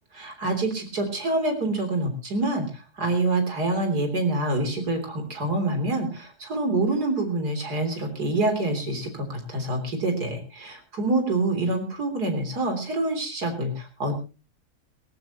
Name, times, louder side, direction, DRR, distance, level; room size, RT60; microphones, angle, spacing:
voice 1, 0.2-14.2, right 2 dB, 85° right, 5 dB, 4.0 m, -26 dB
18.5 x 18.0 x 3.0 m, 0.32 s
omnidirectional pair, 1.7 m